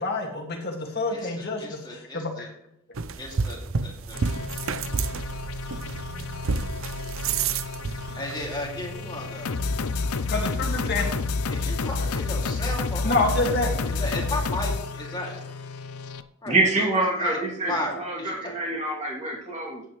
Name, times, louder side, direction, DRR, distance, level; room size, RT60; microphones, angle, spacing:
voice 1, 0.0-2.5 10.3-11.1 11.5-11.6 13.0-13.8, left 2 dB, 45° left, 0 dB, 2.1 m, -27 dB
voice 2, 1.1-2.5 3.2-4.2 8.2-9.5 11.5-13.5 13.9-15.4 16.4-16.6 17.2-17.4 17.7-18.6, left 1 dB, 20° left, -1 dB, 2.6 m, -34 dB
sound 1, 2.9-14.5, right 5 dB, 65° right, 0.6 m, -33 dB
sound 2, 4.1-16.2, left 4 dB, 85° left, 0.6 m, -30 dB
voice 3, 16.4-19.8, right 2 dB, 30° right, -3 dB, 2.8 m, -26 dB
15.5 x 9.0 x 3.2 m, 0.76 s
head